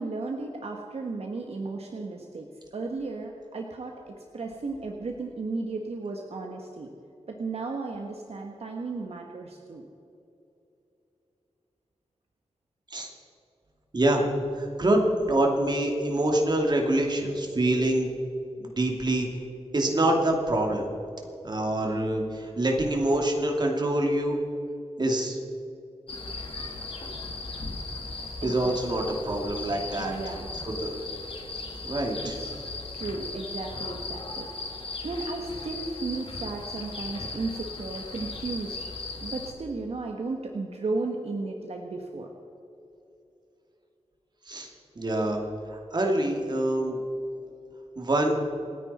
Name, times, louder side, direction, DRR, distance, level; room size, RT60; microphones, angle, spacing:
voice 1, 0.0-2.5 2.7-6.9 7.3-9.8 28.4-29.1 30.0-30.5 32.2-32.5 32.9-34.5 35.0-38.8 39.2-42.3, right 3 dB, 65° right, 2 dB, 1.4 m, -34 dB
voice 2, 13.9-14.3 14.6-18.1 18.6-19.3 19.7-20.9 21.4-24.4 25.0-25.4 28.4-30.1 30.6-31.0 31.8-32.4 44.5-44.7 45.0-45.4 45.7-47.0 48.0-48.3, right 1 dB, 40° right, 1 dB, 2.5 m, -25 dB
sound 1, 26.1-39.5, left 3 dB, 55° left, 2.3 m, -37 dB
27.5 x 9.7 x 4.3 m, 2.8 s
wide cardioid pair, 130°, 11 cm